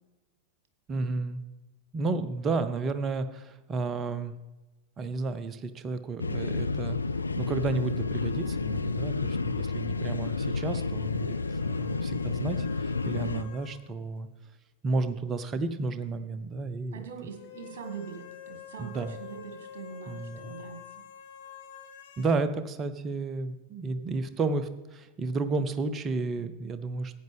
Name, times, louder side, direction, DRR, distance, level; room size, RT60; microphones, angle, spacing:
voice 1, 0.9-1.4 1.9-4.3 5.0-7.0 7.4-11.4 11.6-14.3 14.8-17.0 18.8-19.2 20.1-20.5 22.2-27.2, right 3 dB, 25° right, 11 dB, 0.8 m, -32 dB
sound 1, 6.2-13.4, left 4 dB, 80° left, 0.4 m, -30 dB
sound 2, 7.3-13.9 14.2-14.3 17.3-22.4, left 8 dB, 55° left, 1.3 m, -49 dB
voice 2, 16.9-20.8, right 6 dB, 55° right, 5 dB, 2.1 m, -42 dB
14.5 x 9.2 x 3.5 m, 1.1 s
figure-of-eight pair, 90°, 0 cm